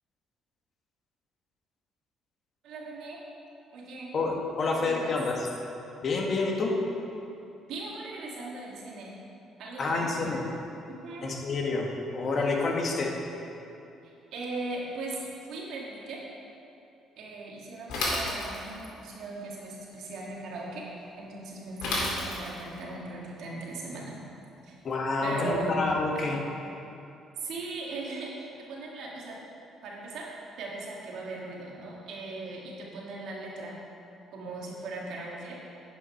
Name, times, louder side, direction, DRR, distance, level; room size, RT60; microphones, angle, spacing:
voice 1, 2.6-3.2 3.7-4.1 4.7-5.2 7.7-9.2 9.6-10.4 10.9-11.3 14.0-16.2 17.2-20.9 21.2-24.2 24.6-24.8 25.2-25.8 26.1-26.5 27.4-29.4 29.8-30.3 30.6-33.8 34.3-35.6, right 2 dB, 75° right, -3 dB, 1.9 m, -38 dB
voice 2, 4.1-5.5 6.0-6.7 9.8-10.4 11.2-11.9 12.1-13.1 24.8-26.4, left 3 dB, 45° left, 0 dB, 1.4 m, -28 dB
Bicycle / Mechanisms, 17.9-18.9 21.8-22.7, left 2 dB, 85° left, 2.3 m, -30 dB
9.5 x 5.6 x 5.7 m, 2.7 s
cardioid pair, 105°, 0 cm